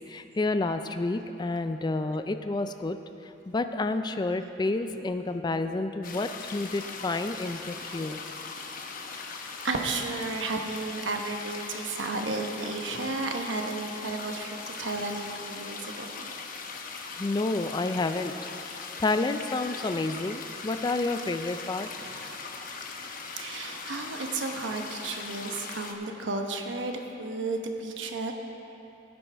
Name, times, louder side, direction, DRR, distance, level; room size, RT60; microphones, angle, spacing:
voice 1, 0.1-3.0 3.2-8.2 17.2-18.3 19.0-21.9, left 2 dB, 25° left, 9 dB, 0.4 m, -29 dB
sound 1, 6.0-25.9, left 4 dB, 50° left, 0.8 m, -40 dB
voice 2, 9.6-16.3 22.0-22.4 23.4-28.3, right 3 dB, 80° right, 3 dB, 1.0 m, -33 dB
17.0 x 9.6 x 3.4 m, 2.9 s
head